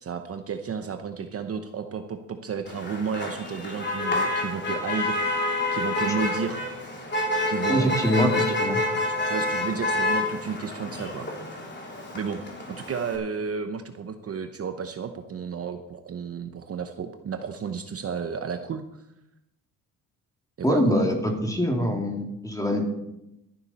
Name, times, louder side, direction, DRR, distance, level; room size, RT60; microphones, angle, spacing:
voice 1, 0.0-5.2 5.7-6.6 7.5-8.6 9.2-11.3 12.1-12.4 12.7-19.0 20.6-21.0, right 6 dB, 40° right, 7 dB, 0.9 m, -32 dB
Motor vehicle (road), 2.7-13.2, left 2 dB, 30° left, 3.4 m, -28 dB
voice 2, 7.7-8.3 8.6-8.8 20.6-22.9, equal, 10° left, 1 dB, 2.6 m, -24 dB
13.0 x 11.0 x 4.2 m, 0.88 s
cardioid pair, 105°, 37 cm